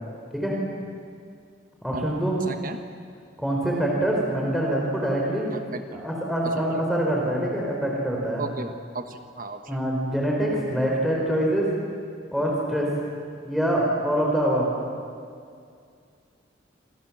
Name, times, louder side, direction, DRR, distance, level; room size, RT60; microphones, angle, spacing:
voice 1, 1.8-2.4 3.4-5.5 5.9-8.4 9.7-11.7 12.3-12.9 13.4-14.7, right 1 dB, ahead, -3 dB, 4.3 m, -25 dB
voice 2, 2.5-2.8 5.5-6.0 6.4-6.8 8.4-9.9, right 3 dB, 50° right, 7 dB, 1.2 m, -36 dB
27.0 x 26.5 x 7.4 m, 2.3 s
head